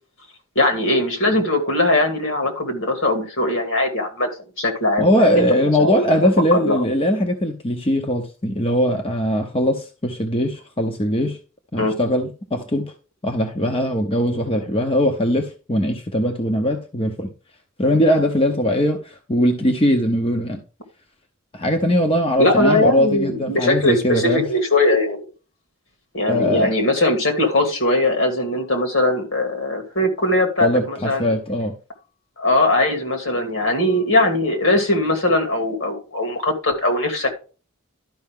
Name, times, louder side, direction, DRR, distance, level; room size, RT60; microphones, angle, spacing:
voice 1, 0.6-4.3 4.6-5.1 5.8-5.9 6.2-6.8 11.8-11.9 22.4-25.2 26.1-31.4 32.4-37.3, left 1 dB, 70° left, 4 dB, 2.5 m, -20 dB
voice 2, 5.0-11.4 11.7-12.9 13.2-17.3 17.8-20.6 21.5-24.5 26.3-26.7 30.6-31.7, equal, 25° left, 4 dB, 0.9 m, -20 dB
12.0 x 5.5 x 3.7 m, 0.34 s
head